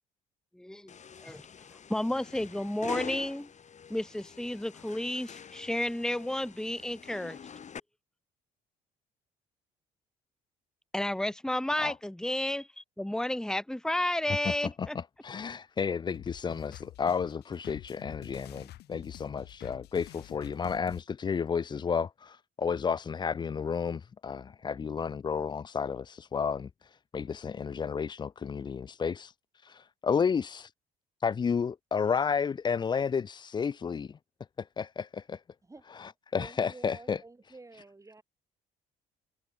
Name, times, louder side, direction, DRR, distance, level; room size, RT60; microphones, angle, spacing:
voice 1, 0.5-0.9 1.2-1.4 1.9-3.5 3.9-7.4 10.9-15.0, left 1 dB, 5° left, 1.6 m, -32 dB
sound 1, 0.9-7.8, left 7 dB, 45° left, 2.6 m, -45 dB
voice 2, 14.4-30.7 31.2-34.2 34.6-35.4 35.9-37.2, left 6 dB, 25° left, 0.4 m, -32 dB
sound 2, 16.1-21.0, left 15 dB, 75° left, 6.9 m, -48 dB
voice 3, 36.3-38.2, right 3 dB, 20° right, 3.3 m, -49 dB
supercardioid pair, 75°, 17 cm